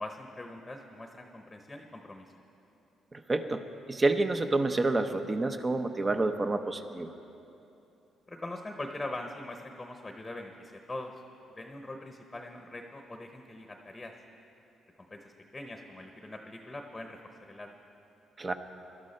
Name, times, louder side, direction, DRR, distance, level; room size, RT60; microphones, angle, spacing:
voice 1, 0.0-2.3 8.3-11.1 11.6-14.1 15.1-17.7, left 2 dB, 15° left, 4 dB, 0.9 m, -42 dB
voice 2, 3.1-7.1 18.4-18.5, right 2 dB, 30° right, 8 dB, 0.8 m, -29 dB
18.0 x 12.0 x 4.3 m, 2.9 s
cardioid pair, 90°, 0 cm